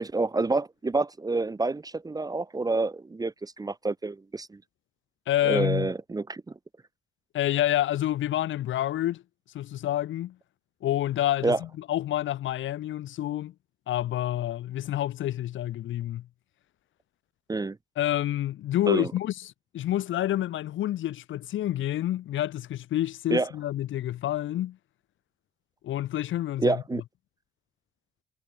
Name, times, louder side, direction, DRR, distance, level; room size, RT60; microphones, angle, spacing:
voice 1, 0.0-4.6 5.4-6.4 11.4-11.6 17.5-17.8 18.9-19.1 23.3-23.5 26.6-27.0, right 3 dB, 20° right, 0.8 m, -28 dB
voice 2, 5.3-5.9 7.3-9.2 9.5-10.4 10.8-13.5 13.9-16.3 18.0-24.8 25.8-26.8, left 13 dB, 75° left, 1.6 m, -28 dB
cardioid pair, 90°, 20 cm